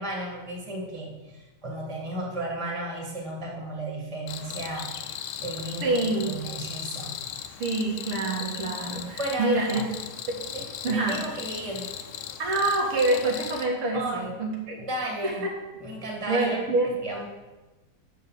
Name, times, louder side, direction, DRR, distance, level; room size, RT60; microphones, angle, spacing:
voice 1, 0.0-4.9 5.4-7.2 9.2-9.8 10.5-11.9 13.9-14.3 14.8-15.5 15.8-16.7 17.0-17.3, right 1 dB, 15° right, -1 dB, 1.8 m, -34 dB
Cricket, 4.3-13.7, left 9 dB, 80° left, 1.5 m, -38 dB
voice 2, 5.8-6.4 7.6-9.9 10.3-10.4 10.8-11.2 12.4-14.8 15.2-15.3 16.3-16.9, right 2 dB, 85° right, -1 dB, 2.6 m, -26 dB
7.4 x 5.9 x 7.4 m, 1.1 s
omnidirectional pair, 2.4 m